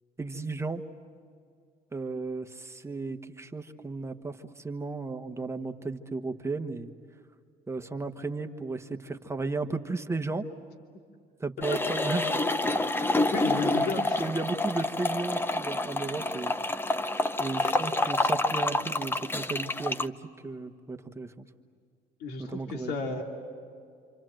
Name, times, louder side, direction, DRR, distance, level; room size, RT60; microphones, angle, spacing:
voice 1, 0.2-0.8 1.9-6.9 7.7-10.5 11.4-12.2 13.2-13.3 13.8-16.5 17.4-20.1 20.4-21.4 22.4-23.0, right 3 dB, 15° right, 6 dB, 1.2 m, -34 dB
sound 1, 11.6-20.1, left 2 dB, 15° left, 0.7 m, -28 dB
voice 2, 13.3-14.2 17.6-17.8 22.2-23.2, left 3 dB, 70° left, 2 dB, 2.9 m, -33 dB
28.0 x 27.5 x 7.8 m, 2.3 s
cardioid pair, 110°, 17 cm